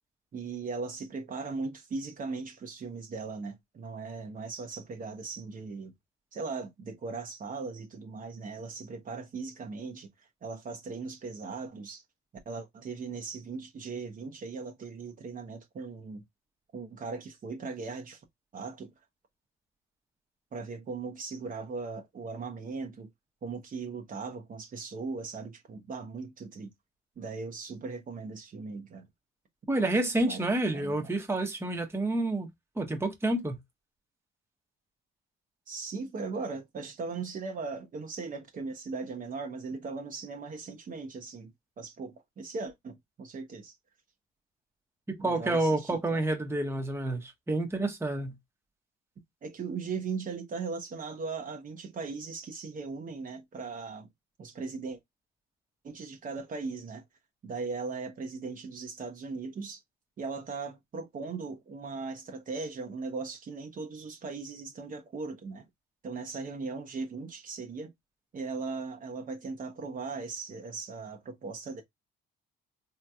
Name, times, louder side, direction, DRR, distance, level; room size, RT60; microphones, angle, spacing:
voice 1, 0.3-5.9 6.3-12.0 12.5-16.2 16.7-18.2 18.5-18.9 20.5-23.1 23.4-26.7 27.2-29.1 30.2-30.4 30.7-31.0 35.7-43.8 45.2-46.2 49.4-54.1 54.4-55.0 55.8-57.0 57.4-59.8 60.2-65.7 66.0-67.9 68.3-71.8, right 4 dB, 40° right, 0.8 m, -38 dB
voice 2, 29.7-32.5 32.8-33.6 45.2-48.3, right 2 dB, 10° right, 1.0 m, -29 dB
3.7 x 2.9 x 2.2 m
cardioid pair, 100°, 21 cm